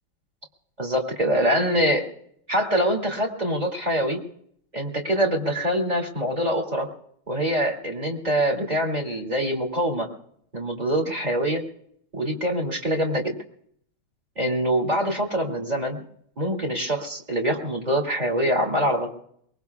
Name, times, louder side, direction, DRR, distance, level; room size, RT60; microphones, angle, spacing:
voice 1, 0.8-2.0 2.5-4.2 4.7-6.9 7.3-10.1 10.5-11.6 12.1-13.3 14.4-16.0 16.4-19.1, equal, 20° right, 2 dB, 2.6 m, -24 dB
23.0 x 21.5 x 2.4 m, 0.66 s
omnidirectional pair, 2.3 m